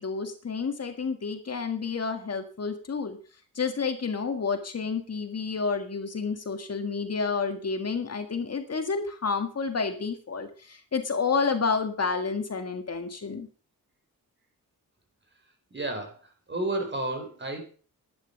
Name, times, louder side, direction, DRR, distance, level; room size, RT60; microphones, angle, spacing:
voice 1, 0.0-3.2 3.6-13.5, left 5 dB, 45° left, 6 dB, 1.7 m, -30 dB
voice 2, 15.7-17.6, right 2 dB, 30° right, 4 dB, 4.3 m, -32 dB
11.5 x 9.5 x 6.6 m, 0.40 s
wide cardioid pair, 140°, 35 cm